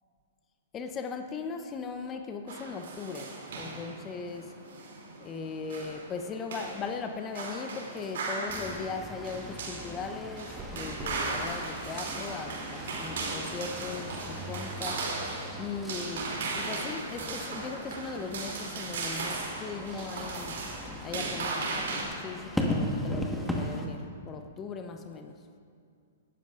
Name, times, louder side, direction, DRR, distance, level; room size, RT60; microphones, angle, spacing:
voice 1, 0.7-4.5 5.2-20.6 21.0-25.3, left 5 dB, 25° left, 6 dB, 0.8 m, -39 dB
sound 1, 2.5-22.0, right 3 dB, 65° right, 2.8 m, -37 dB
sound 2, 5.4-11.5, right 1 dB, 25° right, 2.9 m, -50 dB
sound 3, 8.5-23.9, equal, ahead, 1.4 m, -38 dB
18.0 x 12.5 x 2.5 m, 2.3 s
hypercardioid pair, 115°, 0 cm